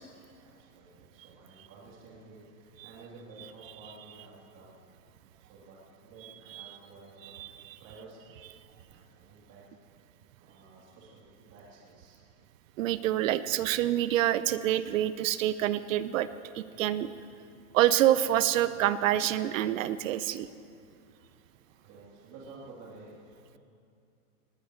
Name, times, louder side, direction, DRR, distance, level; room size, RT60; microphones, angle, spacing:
voice 1, 0.3-4.8 5.4-7.4 7.8-8.3 8.8-9.7 10.4-12.2 21.0-21.3 21.6-23.6, right 3 dB, 40° right, -5 dB, 3.4 m, -52 dB
voice 2, 12.8-16.3 16.5-17.1 17.7-20.5, right 12 dB, 60° right, 15 dB, 0.7 m, -27 dB
18.5 x 18.5 x 3.2 m, 2.6 s
supercardioid pair, 150°, 44 cm